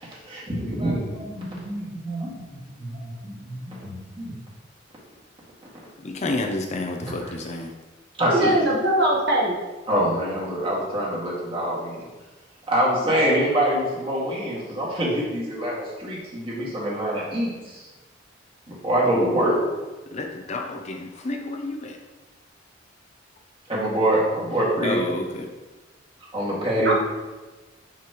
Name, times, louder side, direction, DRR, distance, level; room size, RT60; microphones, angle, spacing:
voice 1, 0.0-4.3 7.0-7.3 8.2-8.6 9.9-12.1 12.7-17.9 18.7-19.5 23.7-25.0 26.3-26.9, right 1 dB, 30° right, -6 dB, 2.0 m, -25 dB
voice 2, 6.0-7.7 20.1-22.0 24.8-25.5, left 2 dB, 35° left, 3 dB, 0.5 m, -30 dB
voice 3, 8.2-9.6 26.8-26.9, right 1 dB, 60° right, -2 dB, 1.2 m, -21 dB
6.4 x 5.7 x 3.0 m, 1.2 s
head